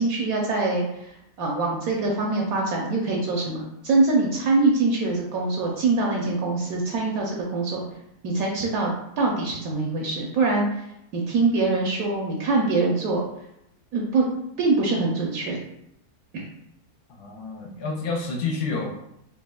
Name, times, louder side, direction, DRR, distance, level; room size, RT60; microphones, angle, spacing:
voice 1, 0.0-7.8 8.2-10.8 11.1-13.2 13.9-14.2 14.6-15.6 16.3-16.4, right 3 dB, 70° right, -1 dB, 1.0 m, -24 dB
voice 2, 17.2-18.9, left 4 dB, 80° left, 1 dB, 1.2 m, -29 dB
4.2 x 3.0 x 2.2 m, 0.80 s
omnidirectional pair, 1.7 m